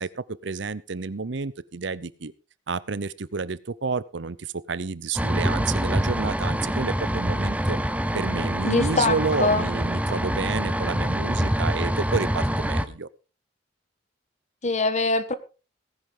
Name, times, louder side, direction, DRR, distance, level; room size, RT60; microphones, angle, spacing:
voice 1, 0.0-2.3 2.7-7.8 8.1-13.1, right 4 dB, 70° right, 18 dB, 0.7 m, -30 dB
sound 1, 5.2-12.9, equal, 10° right, 0.8 m, -25 dB
voice 2, 8.6-9.7 14.6-15.3, left 3 dB, 40° left, 12 dB, 1.4 m, -23 dB
18.0 x 10.5 x 3.9 m, 0.33 s
head